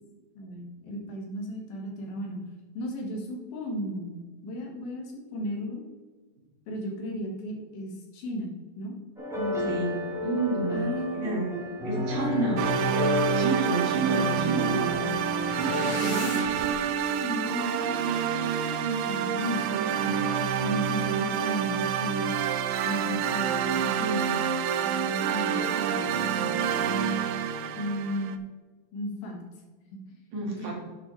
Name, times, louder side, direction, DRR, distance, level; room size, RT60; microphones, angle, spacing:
voice 1, 0.3-2.4 2.7-5.8 6.7-8.9 9.3-9.8 10.7-11.5 12.3-12.6 16.0-22.3 22.8-24.4 24.8-27.3 27.7-28.4 28.9-29.4 29.9-30.0 30.6-30.7, equal, 70° left, 0 dB, 3.4 m, -35 dB
sound 1, 9.2-15.9, left 2 dB, ahead, 2.1 m, -32 dB
voice 2, 10.2-11.5 11.8-12.6 13.3-15.0 15.6-16.3 30.3-30.8, right 3 dB, 60° right, -2 dB, 3.3 m, -30 dB
sound 2, 12.6-28.4, right 8 dB, 80° right, 2.0 m, -28 dB
sound 3, 14.6-16.7, left 6 dB, 90° left, 1.6 m, -39 dB
11.0 x 7.4 x 3.2 m, 1.4 s
omnidirectional pair, 4.6 m